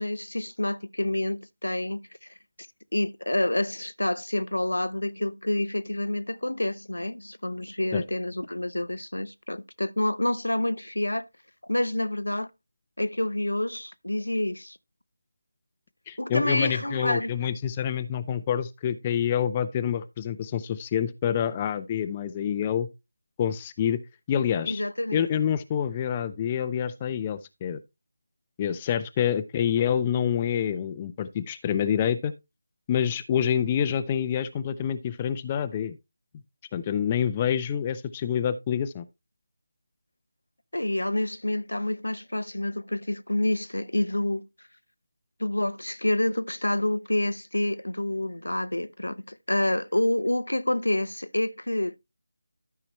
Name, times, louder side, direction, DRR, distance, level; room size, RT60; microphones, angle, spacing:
voice 1, 0.0-2.0 2.9-11.2 11.7-12.5 13.0-14.8 16.2-17.3 24.6-25.2 40.7-44.4 45.4-52.0, left 1 dB, 85° left, 0.7 m, -28 dB
voice 2, 16.1-22.9 23.4-24.0 24.3-24.8 25.1-27.8 28.6-32.3 32.9-36.0 36.7-39.0, left 9 dB, 20° left, 0.5 m, -27 dB
13.0 x 5.8 x 3.0 m
figure-of-eight pair, 160°, 0 cm